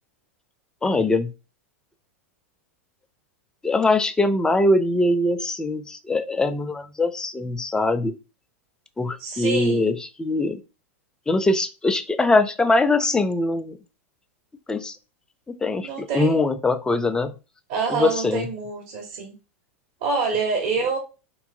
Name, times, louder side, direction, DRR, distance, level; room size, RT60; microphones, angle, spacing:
voice 1, 0.8-1.3 3.6-8.1 9.0-10.6 11.3-13.8 14.7-15.0 15.6-17.3 17.9-18.5, left 2 dB, 10° left, 10 dB, 0.4 m, -22 dB
voice 2, 9.2-9.9 15.8-16.4 17.7-19.3 20.0-21.0, right 4 dB, 50° right, 1 dB, 1.1 m, -26 dB
3.5 x 2.8 x 2.6 m, 0.31 s
figure-of-eight pair, 90°, 7 cm